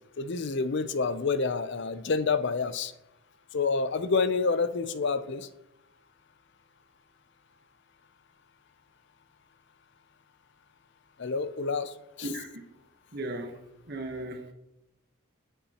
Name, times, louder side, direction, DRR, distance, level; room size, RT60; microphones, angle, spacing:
voice 1, 0.2-2.9 3.5-5.5 11.2-12.3, left 4 dB, 55° left, 13 dB, 0.6 m, -28 dB
voice 2, 12.2-12.8 13.1-13.6 13.8-14.5, right 1 dB, 50° right, 3 dB, 1.1 m, -36 dB
17.5 x 7.0 x 2.9 m, 0.90 s
head